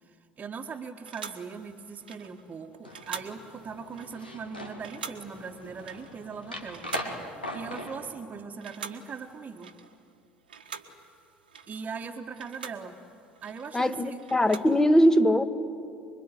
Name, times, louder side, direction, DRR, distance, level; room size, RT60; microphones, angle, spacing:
voice 1, 0.0-6.9 7.5-9.7 11.7-13.0 13.4-14.2, right 5 dB, 30° right, 2 dB, 1.6 m, -40 dB
sound 1, 1.1-8.3 8.6-10.2 10.4-14.8, right 6 dB, 80° right, 1.6 m, -46 dB
sound 2, 2.8-8.1, left 1 dB, 90° left, 2.6 m, -40 dB
voice 2, 13.7-15.4, equal, 10° left, 10 dB, 1.6 m, -21 dB
26.0 x 23.0 x 10.0 m, 2.5 s
figure-of-eight pair, 65°, 5 cm